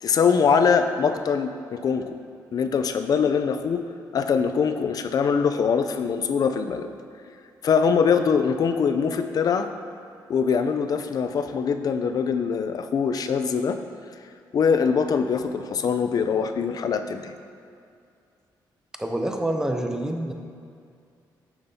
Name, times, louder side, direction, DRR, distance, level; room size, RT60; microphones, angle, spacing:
voice 1, 0.0-2.2 2.5-3.8 4.1-6.9 7.6-9.7 10.3-13.8 14.5-17.3, left 6 dB, 50° left, 8 dB, 0.4 m, -23 dB
voice 2, 19.0-20.3, right 1 dB, 5° right, 3 dB, 0.6 m, -27 dB
8.5 x 5.9 x 2.7 m, 2.4 s
cardioid pair, 110°, 8 cm